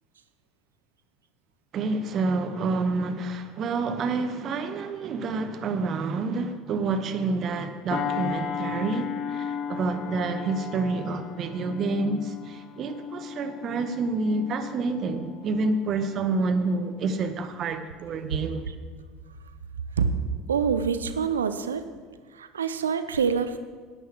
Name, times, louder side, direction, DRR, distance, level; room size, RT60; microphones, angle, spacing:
voice 1, 1.7-18.7, right 3 dB, 45° right, 1.1 m, -28 dB
sound 1, 7.9-16.8 17.2-17.4, left 7 dB, 50° left, 0.9 m, -36 dB
voice 2, 20.5-21.9 22.3-23.6, right 6 dB, 85° right, 0.6 m, -26 dB
10.5 x 9.7 x 4.7 m
figure-of-eight pair, 70°, 0 cm